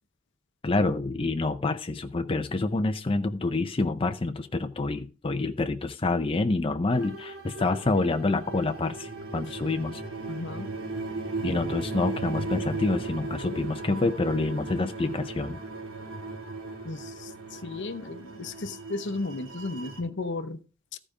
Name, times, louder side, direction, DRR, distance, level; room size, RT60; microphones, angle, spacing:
voice 1, 0.6-10.0 11.4-15.6, left 2 dB, 25° left, 0.5 m, -27 dB
sound 1, 6.9-20.0, right 3 dB, 70° right, 3.3 m, -37 dB
voice 2, 10.3-10.7 16.8-20.6 20.9-21.0, left 3 dB, 55° left, 0.8 m, -34 dB
14.0 x 5.0 x 5.0 m
head